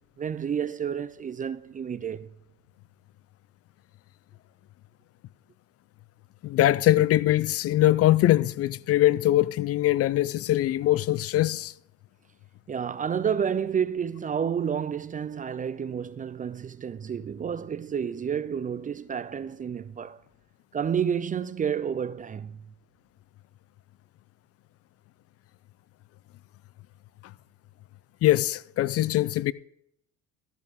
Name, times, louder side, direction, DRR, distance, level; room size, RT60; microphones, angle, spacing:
voice 1, 0.2-2.3 12.7-20.2 20.7-22.7, right 7 dB, 25° right, 0.4 m, -30 dB
voice 2, 6.4-11.7 28.2-29.5, left 14 dB, 45° left, 0.4 m, -22 dB
13.5 x 9.1 x 3.6 m
supercardioid pair, 85°, 33 cm